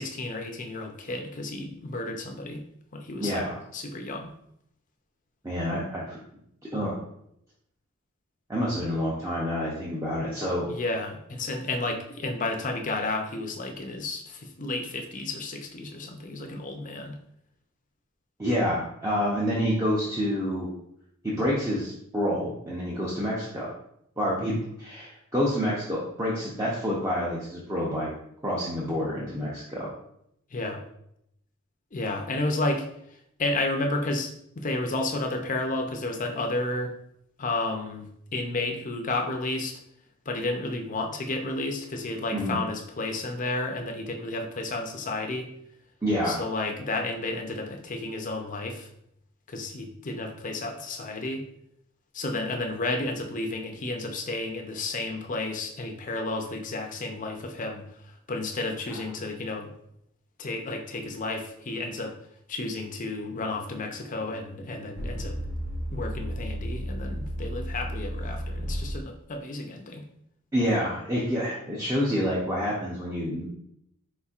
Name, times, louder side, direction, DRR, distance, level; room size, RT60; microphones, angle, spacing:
voice 1, 0.0-2.6 2.9-3.4 3.7-4.3 10.7-17.2 30.5-30.8 31.9-32.9 33.4-34.3 34.6-36.9 37.4-39.8 40.3-45.5 46.2-48.9 49.5-51.4 52.1-59.7 60.4-62.2 62.5-65.4 65.9-70.0, left 2 dB, 35° left, 3 dB, 0.5 m, -32 dB
voice 2, 3.2-3.6 5.4-6.2 6.7-7.0 8.5-10.7 18.4-20.7 21.2-23.7 24.2-28.1 28.4-29.9 42.3-42.6 46.0-46.4 58.9-59.0 70.5-73.5, equal, 15° right, -6 dB, 0.6 m, -28 dB
sound 1, 63.4-68.9, equal, 55° right, 1.1 m, -34 dB
4.3 x 4.2 x 2.4 m, 0.75 s
head